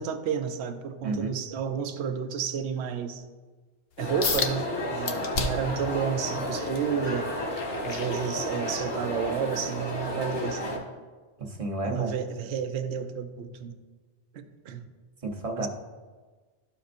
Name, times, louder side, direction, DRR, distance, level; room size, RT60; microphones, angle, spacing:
voice 1, 0.0-3.2 4.0-7.3 7.8-10.9 11.8-13.8 14.3-14.8 15.6-15.7, right 7 dB, 70° right, 8 dB, 0.9 m, -31 dB
voice 2, 1.0-1.4 11.4-12.1 15.2-15.7, right 2 dB, 35° right, 1 dB, 0.9 m, -31 dB
sound 1, 4.0-10.8, left 1 dB, 80° left, 2.0 m, -32 dB
sound 2, 4.2-4.6 5.1-5.7 6.2-8.8 9.3-9.5 10.1-10.2, left 5 dB, 60° left, 0.9 m, -32 dB
12.5 x 5.0 x 2.5 m, 1.4 s
omnidirectional pair, 1.2 m